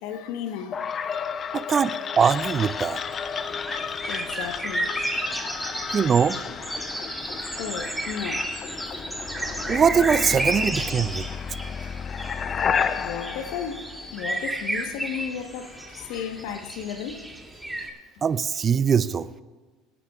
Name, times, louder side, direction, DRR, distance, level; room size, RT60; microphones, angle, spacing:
voice 1, 0.0-2.0 4.1-4.9 6.0-6.4 7.3-8.5 12.2-12.4 13.0-17.4, left 8 dB, 70° left, 1.2 m, -35 dB
sound 1, 0.7-14.6, left 7 dB, 40° left, 0.5 m, -32 dB
voice 2, 1.5-3.0 5.9-6.4 9.7-11.2 18.2-19.3, right 7 dB, 35° right, 0.5 m, -22 dB
sound 2, 2.3-17.9, right 1 dB, 5° right, 2.6 m, -33 dB
24.5 x 9.6 x 2.5 m
supercardioid pair, 90°, 0 cm